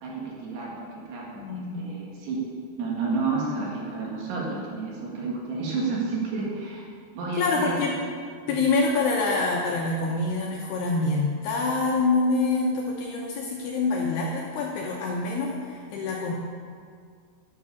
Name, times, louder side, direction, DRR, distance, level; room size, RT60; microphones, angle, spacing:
voice 1, 0.0-2.4 2.8-6.9 7.1-7.8 8.5-8.6, right 4 dB, 65° right, -4 dB, 3.8 m, -31 dB
voice 2, 1.4-1.9 7.4-7.9 8.5-16.3, left 3 dB, 75° left, -2 dB, 2.6 m, -26 dB
11.5 x 7.8 x 7.1 m, 2.1 s
omnidirectional pair, 5.7 m